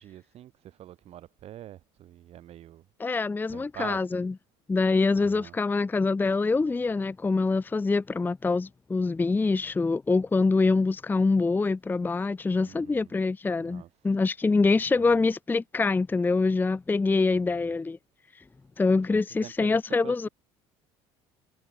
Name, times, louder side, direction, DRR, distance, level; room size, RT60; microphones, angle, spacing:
voice 1, 0.0-2.8 3.5-4.3 5.1-5.6 12.6-13.1 13.6-13.9 15.0-15.3 17.3-17.7 19.1-20.3, right 12 dB, 55° right, 3.7 m, -45 dB
voice 2, 3.0-4.3 4.7-18.0 18.8-20.3, left 3 dB, 15° left, 0.6 m, -25 dB
hypercardioid pair, 70°, 13 cm